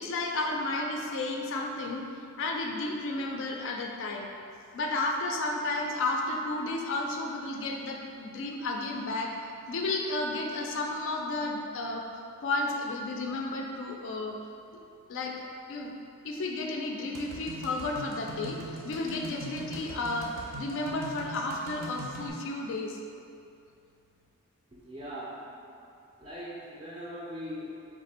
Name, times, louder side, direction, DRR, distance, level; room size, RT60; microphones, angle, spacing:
voice 1, 0.0-2.0 2.4-4.3 4.7-9.3 9.7-12.1 12.4-14.4 15.1-15.9 16.2-23.0, left 2 dB, 55° left, 1 dB, 0.3 m, -32 dB
sound 1, 17.1-22.3, right 2 dB, 70° right, 0.6 m, -42 dB
voice 2, 24.7-25.6 26.2-27.7, equal, 25° right, -8 dB, 0.4 m, -40 dB
3.5 x 2.5 x 4.1 m, 2.5 s
head